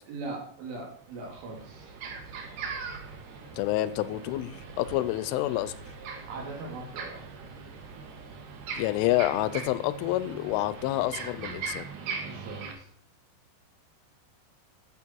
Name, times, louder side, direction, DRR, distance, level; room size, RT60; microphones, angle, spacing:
voice 1, 0.1-1.9 2.3-2.6 6.3-7.3 12.2-12.9, right 3 dB, 80° right, -1 dB, 5.4 m, -40 dB
sound 1, 0.7-0.8 1.1-12.7, right 5 dB, 60° right, 2.3 m, -40 dB
voice 2, 3.6-5.8 8.8-11.9, left 15 dB, 85° left, 15 dB, 3.2 m, -28 dB
11.5 x 8.3 x 4.6 m, 0.64 s
omnidirectional pair, 5.6 m